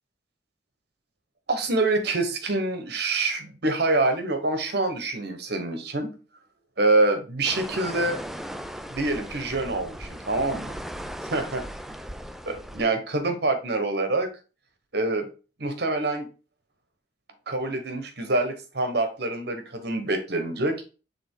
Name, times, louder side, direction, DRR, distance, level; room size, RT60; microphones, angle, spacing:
voice 1, 1.5-6.1 6.8-8.2 8.9-10.7 11.3-11.6 12.4-14.3 14.9-15.3 15.6-16.3 17.5-20.9, right 2 dB, 60° right, 6 dB, 1.2 m, -26 dB
sound 1, 7.4-12.9, equal, ahead, 0.3 m, -37 dB
6.9 x 3.7 x 3.7 m, 0.34 s
head